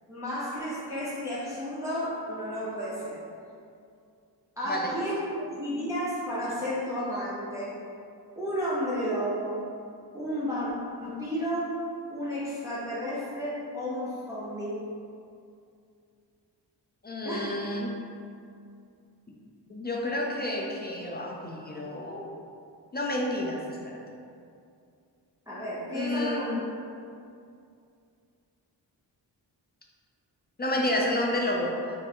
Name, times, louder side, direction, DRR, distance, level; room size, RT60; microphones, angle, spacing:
voice 1, 0.1-3.2 4.6-7.8 8.4-9.6 10.1-10.7 11.0-11.8 12.1-14.8 17.2-17.6 25.5-26.7 31.0-31.1, equal, 5° right, -9 dB, 0.7 m, -32 dB
voice 2, 4.7-5.0 17.0-18.0 19.3-19.4 19.7-22.3 22.9-24.0 25.9-26.6 30.6-32.0, left 1 dB, 25° left, -1 dB, 0.4 m, -30 dB
3.6 x 2.1 x 3.7 m, 2.4 s
cardioid pair, 60°, 42 cm